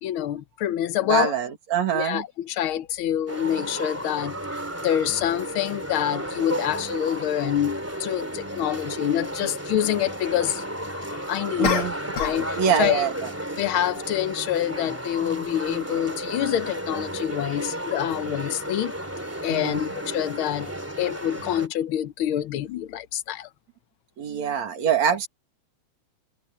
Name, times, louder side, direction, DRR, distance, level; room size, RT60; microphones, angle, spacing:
voice 1, 0.0-1.3 1.9-4.4 4.8-10.6 11.3-11.9 12.2-13.0 13.6-18.9 19.4-20.7 21.0-23.5, left 11 dB, 85° left, 1.1 m, -26 dB
voice 2, 1.1-2.2 11.6-11.9 12.5-13.3 19.5-19.9 24.2-25.3, right 7 dB, 70° right, 3.4 m, -24 dB
sound 1, 3.3-21.7, right 1 dB, 5° right, 2.3 m, -33 dB
sound 2, 11.6-12.5 12.8-13.1, left 7 dB, 45° left, 3.0 m, -28 dB
omnidirectional pair, 3.4 m